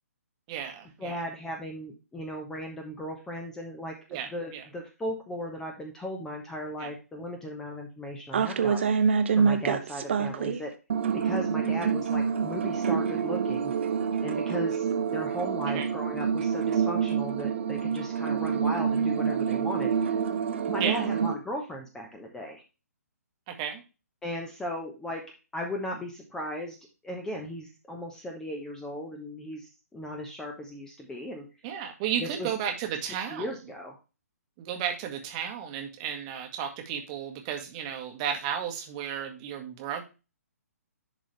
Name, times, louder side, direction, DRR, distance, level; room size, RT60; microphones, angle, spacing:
voice 1, 0.5-1.2 4.1-4.6 6.8-6.9 15.7-15.9 20.8-21.0 23.5-23.8 31.6-33.5 34.6-40.0, right 9 dB, 25° right, 4 dB, 1.4 m, -33 dB
voice 2, 1.0-9.0 9.3-10.7 11.1-13.7 14.2-20.2 20.7-22.6 24.2-25.2 25.5-26.8 27.0-31.5 32.2-32.5 33.3-34.0, equal, 5° left, 2 dB, 1.0 m, -37 dB
sound 1, 8.3-10.6 10.9-21.3, right 6 dB, 45° right, 0.7 m, -27 dB
10.5 x 3.9 x 3.2 m, 0.30 s
figure-of-eight pair, 130°, 9 cm